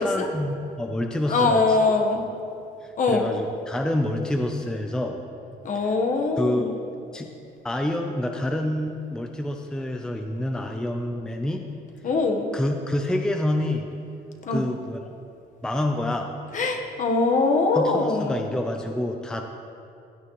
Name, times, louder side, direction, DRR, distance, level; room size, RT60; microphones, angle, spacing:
voice 1, 0.0-1.6 2.8-5.2 6.4-6.6 7.1-7.3 7.6-11.6 12.5-13.9 14.5-15.0 15.6-16.3 17.8-19.4, left 1 dB, 5° left, 3 dB, 0.6 m, -27 dB
voice 2, 1.2-2.2 3.0-3.3 5.6-6.8 12.0-12.5 14.4-14.6 16.5-18.4, left 3 dB, 50° left, 3 dB, 1.3 m, -22 dB
16.0 x 9.5 x 3.2 m, 2.6 s
cardioid pair, 110°, 17 cm